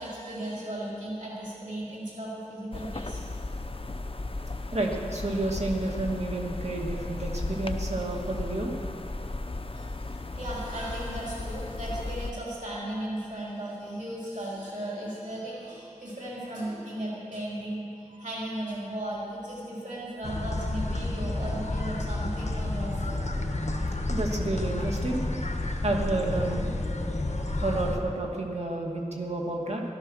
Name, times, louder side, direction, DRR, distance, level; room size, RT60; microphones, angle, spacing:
voice 1, 0.0-3.2 9.7-23.3, right 1 dB, 85° right, -6 dB, 4.0 m, -36 dB
sound 1, 2.7-12.3, left 2 dB, 45° left, 0.8 m, -35 dB
voice 2, 4.7-8.7 24.1-25.2 25.8-26.7 27.6-29.8, right 2 dB, 60° right, -1 dB, 2.3 m, -30 dB
sound 2, 20.2-28.0, left 2 dB, 65° left, 1.4 m, -30 dB
17.0 x 12.5 x 6.4 m, 2.6 s
wide cardioid pair, 50°, 13 cm